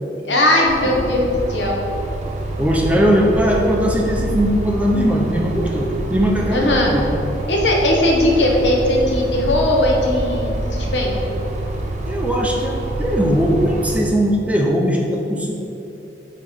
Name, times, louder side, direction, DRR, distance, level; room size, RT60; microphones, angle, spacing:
voice 1, 0.2-1.8 6.5-6.9 7.5-11.1, left 1 dB, 75° left, -1 dB, 1.0 m, -18 dB
sound 1, 0.6-14.0, right 1 dB, 40° right, 0.8 m, -26 dB
voice 2, 2.6-7.1 12.0-15.5, equal, 10° right, -1 dB, 0.5 m, -19 dB
8.5 x 3.0 x 4.4 m, 2.8 s
head